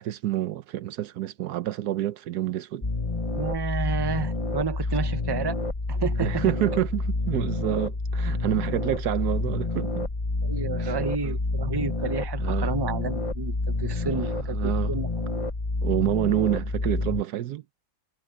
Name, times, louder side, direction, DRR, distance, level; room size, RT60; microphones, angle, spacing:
voice 1, 0.0-2.9 6.2-10.1 10.8-10.9 11.2-11.3 12.4-12.7 13.8-15.0 15.8-17.6, right 13 dB, 80° right, 1.3 m, -28 dB
sound 1, 2.8-17.2, left 3 dB, 25° left, 1.0 m, -28 dB
voice 2, 3.4-5.5 5.9-6.4 10.4-15.1 15.3-15.5, right 5 dB, 20° right, 0.8 m, -31 dB
omnidirectional pair, 1.7 m